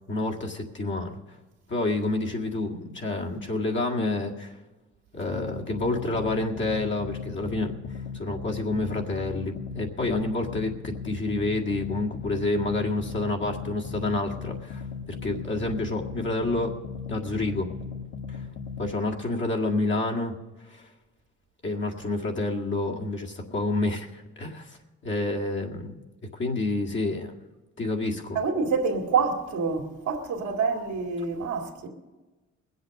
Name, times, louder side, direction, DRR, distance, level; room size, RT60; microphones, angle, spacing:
voice 1, 0.1-1.2 1.7-4.5 5.1-16.7 17.1-17.7 18.3-18.4 18.8-20.3 20.8-20.9 21.6-24.8 25.0-26.0 26.3-27.3 27.8-28.4, left 2 dB, 40° left, 1.9 m, -29 dB
sound 1, 5.3-18.9, left 6 dB, 80° left, 1.5 m, -37 dB
voice 2, 28.3-31.9, right 5 dB, 75° right, 2.2 m, -27 dB
20.5 x 8.0 x 6.4 m
cardioid pair, 90°, 30 cm